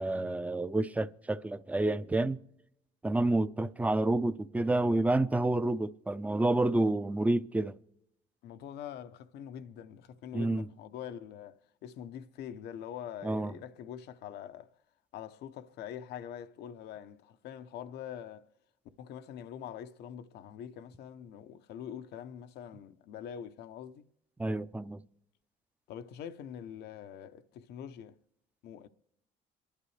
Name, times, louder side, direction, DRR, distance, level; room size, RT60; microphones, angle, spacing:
voice 1, 0.0-2.4 3.0-7.7 10.3-10.7 13.2-13.5 24.4-25.0, right 2 dB, 10° right, 0.5 m, -29 dB
voice 2, 8.4-14.7 15.1-18.5 19.0-24.0 25.9-28.1 28.6-28.9, left 9 dB, 75° left, 0.8 m, -44 dB
27.0 x 11.5 x 3.2 m
cardioid pair, 110°, 17 cm